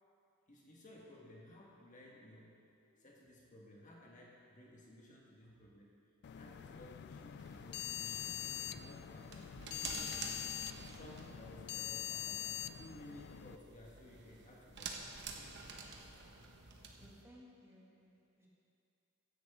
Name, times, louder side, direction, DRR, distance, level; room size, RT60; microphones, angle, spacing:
voice 1, 0.5-6.0 6.4-10.6 10.9-15.1, left 1 dB, 40° left, -3 dB, 1.4 m, -57 dB
sound 1, 6.2-13.6, left 11 dB, 55° left, 0.3 m, -44 dB
sound 2, 7.4-17.2, right 4 dB, 55° right, 1.1 m, -50 dB
voice 2, 16.6-18.5, equal, 15° right, -5 dB, 2.1 m, -61 dB
15.5 x 10.5 x 3.6 m, 2.5 s
head